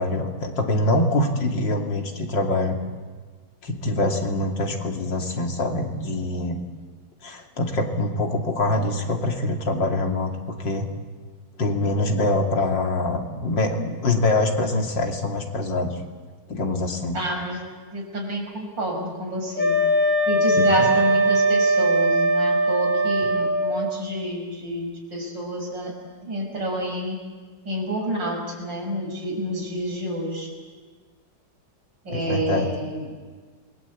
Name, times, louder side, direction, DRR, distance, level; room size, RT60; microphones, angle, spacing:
voice 1, 0.0-2.8 3.6-6.6 7.2-10.9 11.6-16.0 16.5-17.2 20.6-20.9 32.1-32.7, left 2 dB, 80° left, 3 dB, 3.4 m, -24 dB
voice 2, 17.1-17.6 17.9-19.8 20.3-25.9 26.2-27.2 27.6-30.5 32.0-33.2, equal, 85° right, 1 dB, 6.6 m, -29 dB
Wind instrument woodwind instrument, 19.5-23.8, right 1 dB, 25° left, 6.2 m, -20 dB
28.0 x 21.5 x 8.4 m, 1.5 s
omnidirectional pair, 2.0 m